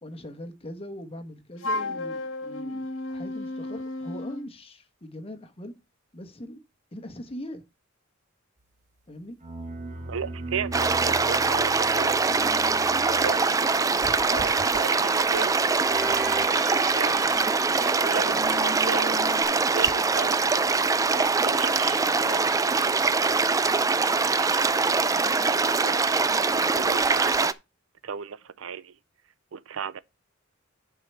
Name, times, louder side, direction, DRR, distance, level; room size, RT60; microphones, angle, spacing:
voice 1, 0.0-5.8 6.1-6.6 6.9-7.6 9.1-9.4, left 1 dB, 30° left, 1.2 m, -41 dB
Wind instrument woodwind instrument, 1.6-4.5, left 2 dB, 70° left, 1.2 m, -33 dB
sound 1, 9.4-19.4, right 2 dB, 40° right, 1.6 m, -38 dB
voice 2, 10.1-12.3 13.1-15.6 17.0-17.2 17.7-19.2 19.5-20.4 21.2-23.3 24.4-26.0 26.2-27.5 28.0-28.9 29.5-30.0, right 6 dB, 70° right, 0.5 m, -36 dB
sound 2, 10.7-27.5, right 4 dB, 15° right, 0.4 m, -23 dB
9.8 x 4.9 x 4.5 m
head